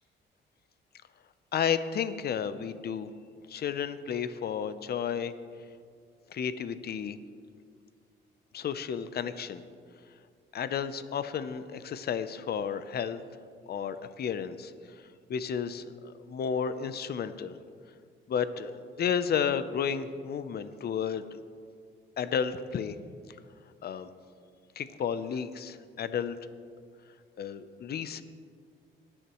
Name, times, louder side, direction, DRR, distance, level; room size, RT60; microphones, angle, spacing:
voice 1, 1.5-3.1 3.5-5.3 6.3-7.2 8.5-9.6 10.5-13.2 13.7-14.7 15.3-17.6 18.3-21.2 22.2-23.0 23.8-24.1 24.8-26.4 27.4-28.2, left 7 dB, 55° left, 12 dB, 0.7 m, -32 dB
19.5 x 9.9 x 3.1 m, 2.1 s
cardioid pair, 90°, 20 cm